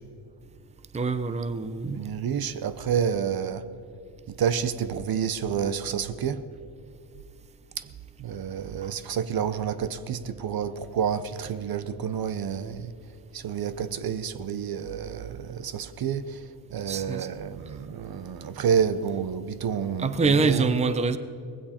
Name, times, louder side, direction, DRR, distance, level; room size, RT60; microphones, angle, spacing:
voice 1, 0.9-2.0 16.9-17.3 20.0-21.2, right 4 dB, 15° right, 0.7 m, -25 dB
voice 2, 1.8-3.7 4.4-6.5 7.8-7.9 8.2-12.9 13.3-16.4 16.7-20.7, right 7 dB, 55° right, 0.9 m, -29 dB
19.5 x 16.0 x 4.4 m
cardioid pair, 100°, 45 cm